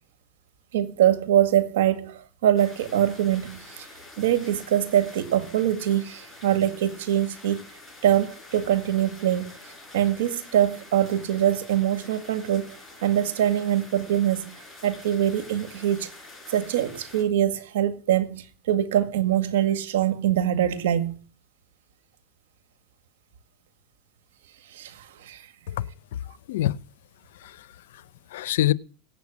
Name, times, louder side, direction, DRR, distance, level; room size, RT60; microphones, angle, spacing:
voice 1, 0.7-3.9 4.2-7.6 8.0-9.5 9.9-16.1 16.5-21.2 24.7-25.4, right 11 dB, 80° right, 1.8 m, -24 dB
sound 1, 2.6-17.2, left 2 dB, ahead, 6.3 m, -47 dB
voice 2, 25.7-26.8 27.3-28.7, left 14 dB, 80° left, 0.7 m, -28 dB
17.5 x 8.0 x 8.5 m
supercardioid pair, 125°, 0 cm